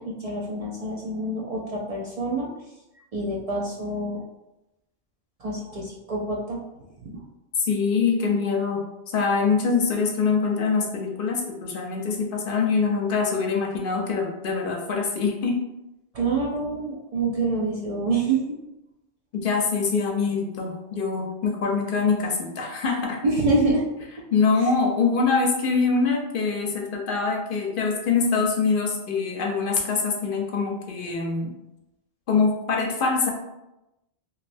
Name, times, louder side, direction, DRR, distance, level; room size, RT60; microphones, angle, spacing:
voice 1, 0.0-2.5 3.1-4.2 5.4-6.6 7.1-7.2 16.1-18.4 23.2-23.8, right 2 dB, 65° right, -3 dB, 0.3 m, -26 dB
voice 2, 7.6-15.6 19.3-23.2 24.3-31.5 32.3-33.3, left 4 dB, 60° left, 1 dB, 0.6 m, -24 dB
3.1 x 2.6 x 2.5 m, 0.93 s
omnidirectional pair, 1.1 m